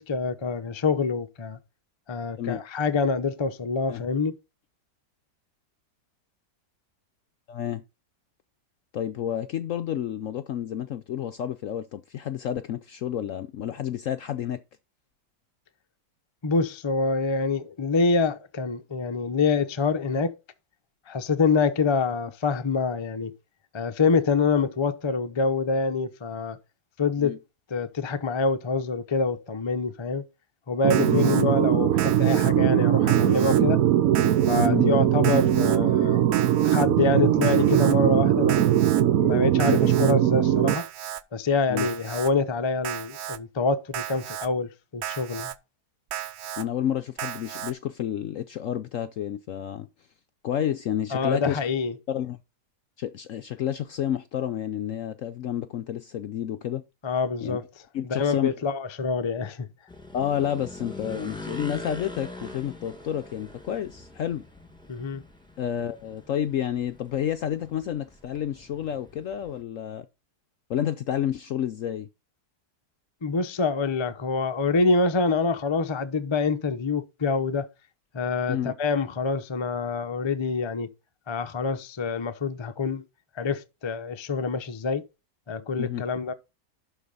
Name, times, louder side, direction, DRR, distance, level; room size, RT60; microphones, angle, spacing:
voice 1, 0.0-1.6 2.1-4.4 16.4-20.3 21.1-23.3 23.7-26.6 27.0-27.4 27.7-30.2 30.7-33.8 34.5-36.3 36.6-38.8 39.2-40.8 41.3-45.5 51.1-51.9 57.0-57.6 58.1-59.7 64.9-65.2 73.2-77.7 78.1-80.9 81.3-83.0 83.4-85.0 85.5-86.3, left 4 dB, 40° left, 0.4 m, -26 dB
voice 2, 7.5-7.8 8.9-14.6 27.2-27.4 31.0-31.2 34.5-34.9 41.7-41.9 46.6-49.9 50.4-51.6 52.1-52.4 53.0-56.8 57.4-57.6 57.9-58.5 60.1-64.4 65.6-70.1 70.7-72.1 78.5-78.7 85.8-86.0, left 10 dB, 70° left, 0.8 m, -30 dB
sound 1, 30.8-40.7, right 11 dB, 60° right, 1.0 m, -21 dB
Alarm, 30.9-31.4 32.0-32.5 33.1-33.6 34.1-34.7 35.2-35.8 36.3-36.9 37.4-37.9 38.5-39.0 39.6-40.1 40.7-41.2 41.8-42.3 42.8-43.4 43.9-44.5 45.0-45.5 46.1-46.6 47.2-47.7, right 10 dB, 75° right, 0.6 m, -34 dB
sound 2, 59.9-69.6, left 2 dB, 5° left, 1.8 m, -43 dB
11.5 x 4.1 x 5.4 m
omnidirectional pair, 1.9 m